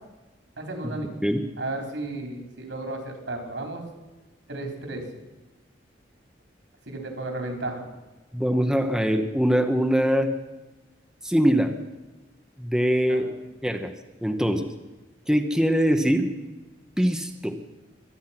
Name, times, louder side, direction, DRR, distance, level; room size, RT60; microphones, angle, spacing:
voice 1, 0.6-1.1 1.6-3.8 4.5-5.0 6.9-7.8 13.1-13.2, right 2 dB, 80° right, 3 dB, 4.0 m, -33 dB
voice 2, 8.3-10.3 11.2-11.7 12.6-13.3 13.6-13.9 14.2-14.7 15.3-16.3 17.0-17.6, equal, 5° right, 5 dB, 1.0 m, -22 dB
24.0 x 9.4 x 5.9 m, 1.1 s
head